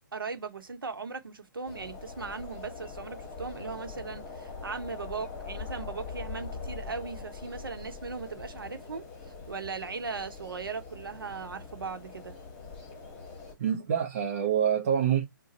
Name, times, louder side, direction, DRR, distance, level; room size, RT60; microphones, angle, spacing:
voice 1, 0.1-12.3, right 4 dB, 85° right, 0.9 m, -38 dB
sound 1, 1.7-13.6, left 4 dB, 25° left, 1.1 m, -43 dB
voice 2, 13.6-15.3, right 8 dB, 40° right, 0.8 m, -26 dB
2.5 x 2.3 x 3.9 m
hypercardioid pair, 145°, 11 cm